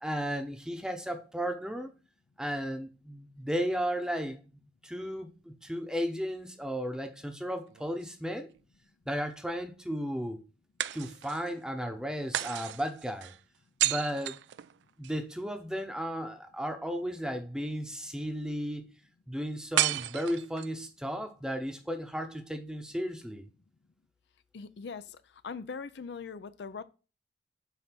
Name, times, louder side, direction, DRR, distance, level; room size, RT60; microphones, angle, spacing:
voice 1, 0.0-1.9 2.4-8.5 9.1-10.4 10.9-13.3 13.8-14.4 15.0-18.9 19.3-23.5, equal, 5° right, 0.8 m, -34 dB
sound 1, 7.7-8.8 10.8-11.6 12.3-15.2 19.8-20.8, right 13 dB, 75° right, 0.3 m, -33 dB
voice 2, 24.5-26.8, left 5 dB, 70° left, 0.4 m, -41 dB
7.9 x 2.7 x 5.9 m
head